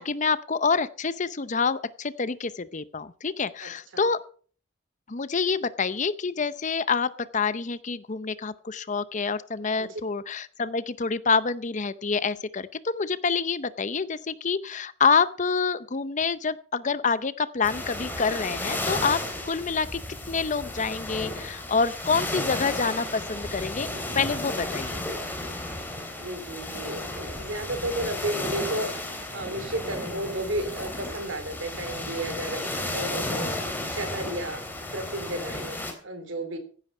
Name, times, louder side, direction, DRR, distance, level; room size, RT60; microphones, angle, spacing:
voice 1, 0.0-4.2 5.1-20.0 20.3-23.9 24.1-25.0, left 5 dB, 35° left, 15 dB, 0.7 m, -27 dB
voice 2, 3.6-4.0 9.8-10.0 26.2-28.9 29.3-34.6 34.9-36.6, right 1 dB, 65° right, 9 dB, 3.4 m, -33 dB
sound 1, 17.6-35.9, left 1 dB, 10° left, 3.2 m, -33 dB
16.0 x 9.9 x 5.3 m, 0.43 s
head